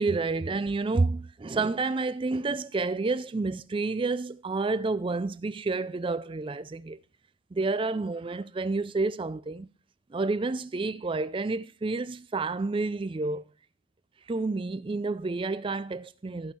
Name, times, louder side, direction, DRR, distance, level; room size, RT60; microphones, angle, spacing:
voice 1, 0.0-7.0 7.5-9.7 10.1-13.4 14.3-16.5, right 3 dB, 25° right, 0.4 m, -29 dB
14.0 x 5.4 x 4.3 m
head